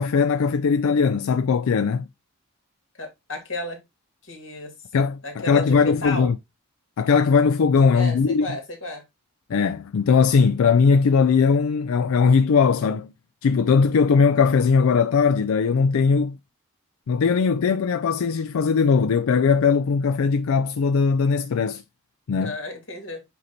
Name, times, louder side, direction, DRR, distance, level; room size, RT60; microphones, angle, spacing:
voice 1, 0.0-2.1 4.9-6.4 7.0-8.5 9.5-13.1 13.4-16.4 17.1-21.8 22.3-22.5, left 5 dB, 80° left, 0.4 m, -19 dB
voice 2, 3.0-3.8 4.2-4.7 5.2-6.3 7.9-9.1 13.9-14.0 22.4-23.2, left 2 dB, 60° left, 2.6 m, -33 dB
8.2 x 2.9 x 4.0 m
head